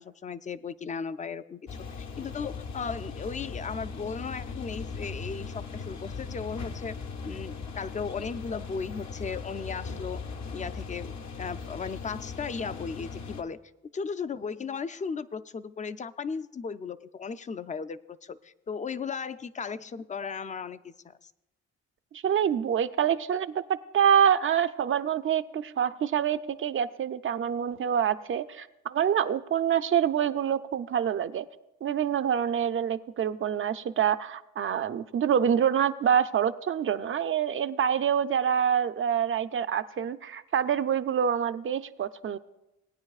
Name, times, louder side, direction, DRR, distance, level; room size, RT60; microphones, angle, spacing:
voice 1, 0.0-7.0 7.2-10.2 10.5-11.1 11.4-13.6 13.9-21.3, left 5 dB, 25° left, 14 dB, 0.4 m, -36 dB
sound 1, 1.7-13.4, left 5 dB, 65° left, 0.9 m, -39 dB
voice 2, 22.1-23.6 23.9-31.5 31.8-42.4, right 8 dB, 45° right, 11 dB, 0.5 m, -26 dB
19.0 x 9.4 x 2.4 m, 0.96 s
cardioid pair, 90°, 30 cm